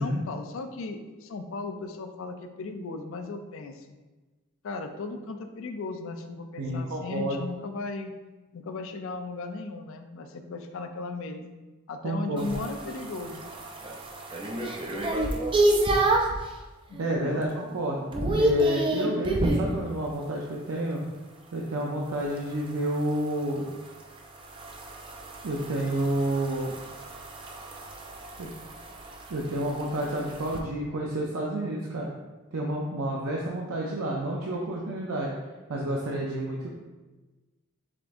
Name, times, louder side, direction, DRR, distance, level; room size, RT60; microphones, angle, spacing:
voice 1, 0.0-4.0 4.6-8.1 8.5-11.5 11.9-13.4 16.9-17.4, left 3 dB, 65° left, 7 dB, 0.4 m, -36 dB
voice 2, 6.6-7.4 12.0-12.5 17.0-18.0 18.4-21.0 21.5-23.6 25.4-26.7 28.4-28.5 29.3-32.1 32.5-35.3 35.7-36.7, right 1 dB, 80° right, -2 dB, 0.5 m, -29 dB
sound 1, 12.4-16.4 16.9-17.3 17.6-19.7 22.2-30.6, right 2 dB, 25° right, 0.4 m, -29 dB
5.0 x 3.5 x 2.5 m, 1.2 s
head